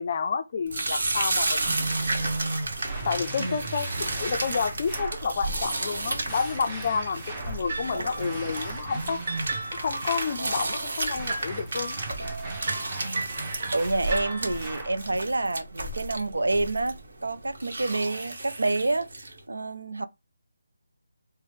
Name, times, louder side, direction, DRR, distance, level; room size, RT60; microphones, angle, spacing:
voice 1, 0.0-1.8 3.0-9.3 9.7-12.0, left 5 dB, 35° left, 0.4 m, -30 dB
sound 1, 0.7-19.4, right 2 dB, 60° right, 1.1 m, -33 dB
sound 2, 1.6-5.3 6.3-7.7 8.2-10.4 11.2-15.0, right 2 dB, 15° right, 0.9 m, -37 dB
voice 2, 3.4-3.7 13.0-20.0, right 2 dB, 90° right, 0.4 m, -28 dB
sound 3, 7.7-14.8, right 3 dB, 45° right, 0.6 m, -36 dB
3.9 x 2.0 x 3.4 m
figure-of-eight pair, 170°, 0 cm